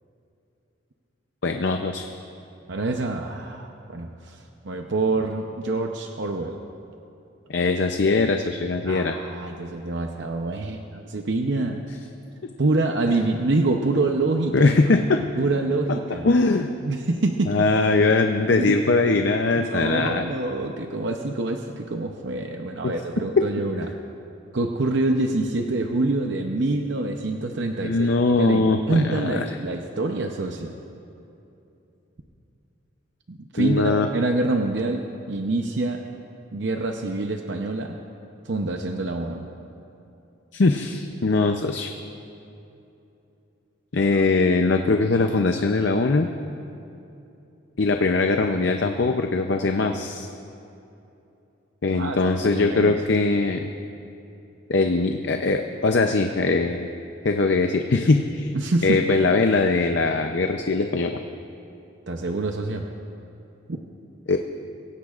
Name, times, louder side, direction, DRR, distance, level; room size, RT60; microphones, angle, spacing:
voice 1, 1.4-2.1 7.5-9.2 13.1-13.2 14.5-15.2 16.2-16.7 17.5-20.2 22.8-22.9 23.4-23.5 27.8-29.4 33.6-34.1 40.5-41.9 43.9-46.3 47.8-50.3 51.8-53.6 54.7-56.9 57.2-58.5 58.8-61.1 64.3-64.4, left 3 dB, 60° left, 5 dB, 0.6 m, -21 dB
voice 2, 2.7-6.6 8.8-11.8 12.6-14.7 15.3-16.3 16.8-17.6 18.6-18.8 19.6-23.9 24.5-28.1 28.4-30.8 33.3-36.0 36.5-38.0 38.4-39.5 44.1-44.2 52.0-53.0 58.5-59.0 62.1-62.8 63.7-63.8, right 2 dB, 60° right, 3 dB, 0.7 m, -26 dB
24.0 x 16.5 x 2.5 m, 2.8 s
head